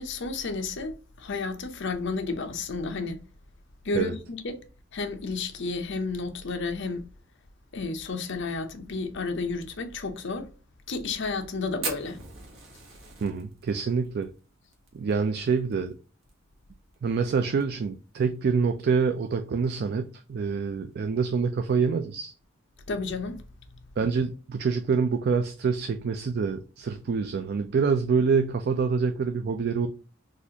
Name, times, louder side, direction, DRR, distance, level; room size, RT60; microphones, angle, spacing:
voice 1, 0.0-3.2 3.8-4.6 4.9-7.1 7.7-10.5 10.9-12.2 22.9-23.4, left 3 dB, 65° left, 0.7 m, -32 dB
Fire, 11.8-16.3 16.6-16.7 16.9-17.0 17.4-17.8 18.3-18.4 19.5-19.6, right 4 dB, 80° right, 1.2 m, -39 dB
voice 2, 13.2-14.3 14.9-15.9 17.0-22.3 24.0-29.9, right 5 dB, 50° right, 0.4 m, -26 dB
4.1 x 2.4 x 2.8 m
head